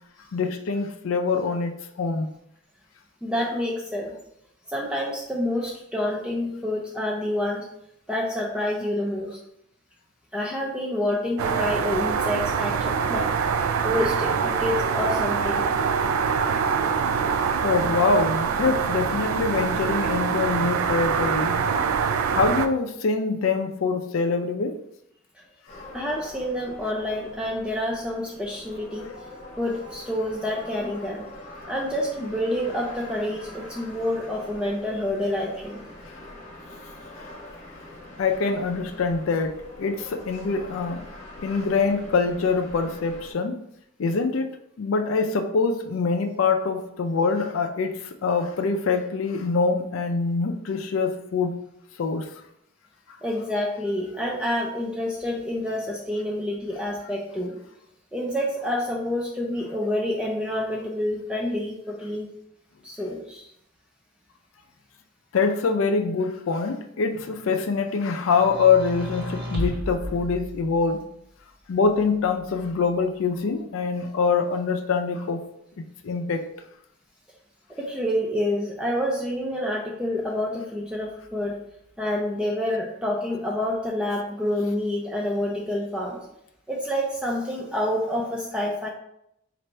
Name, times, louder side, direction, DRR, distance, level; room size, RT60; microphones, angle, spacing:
voice 1, 0.3-2.3 13.4-13.5 17.6-21.6 22.3-24.8 37.2-37.3 38.2-41.0 41.4-43.6 44.0-44.5 44.8-51.6 52.0-52.3 65.3-71.1 71.7-75.4 76.0-76.4, left 4 dB, 70° left, 5 dB, 0.4 m, -24 dB
voice 2, 3.2-4.1 4.7-7.7 8.1-9.4 10.3-13.3 13.8-15.6 25.9-29.1 29.6-31.2 31.7-35.8 53.2-57.6 58.1-62.3 62.8-63.5 77.7-81.5 82.0-86.2 86.7-88.9, left 1 dB, 5° right, -2 dB, 0.4 m, -28 dB
sound 1, 11.4-22.7, right 6 dB, 85° right, 0.3 m, -24 dB
sound 2, 25.7-43.3, left 1 dB, 35° left, 1.0 m, -44 dB
sound 3, 68.3-71.1 72.0-72.9, left 1 dB, 50° right, 0.9 m, -34 dB
3.2 x 2.5 x 4.3 m, 0.77 s
head